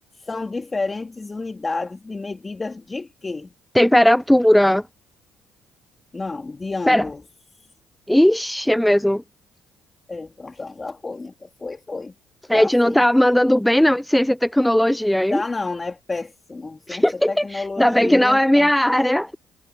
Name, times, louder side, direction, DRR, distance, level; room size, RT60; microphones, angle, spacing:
voice 1, 0.1-3.5 6.1-7.2 7.5-7.7 10.1-12.1 12.5-13.0 15.3-18.7, left 3 dB, 25° left, 3.1 m, -30 dB
voice 2, 3.8-4.8 6.9-7.0 8.1-9.2 12.5-15.4 16.9-19.3, left 1 dB, 5° left, 0.6 m, -17 dB
supercardioid pair, 70°, 0 cm